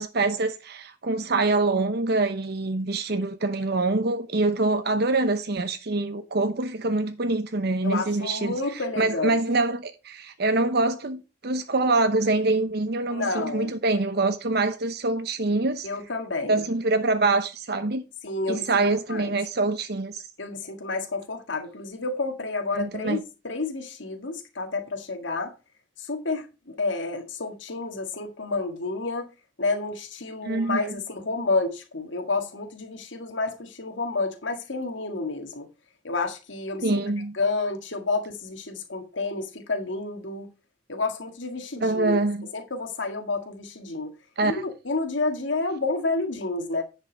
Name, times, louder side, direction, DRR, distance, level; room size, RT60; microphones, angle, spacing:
voice 1, 0.0-8.5 9.0-15.9 16.5-18.0 18.5-20.2 22.7-23.2 30.4-30.8 36.8-37.3 41.8-42.5 44.4-44.6, right 2 dB, 60° right, 0.8 m, -25 dB
voice 2, 7.8-9.4 13.1-13.7 15.8-16.6 18.2-19.3 20.4-23.2 23.4-25.5 26.0-29.3 29.6-35.7 36.0-37.0 37.3-40.5 40.9-42.2 42.5-44.1 44.4-46.8, left 3 dB, 90° left, 1.8 m, -30 dB
10.0 x 5.4 x 5.1 m
head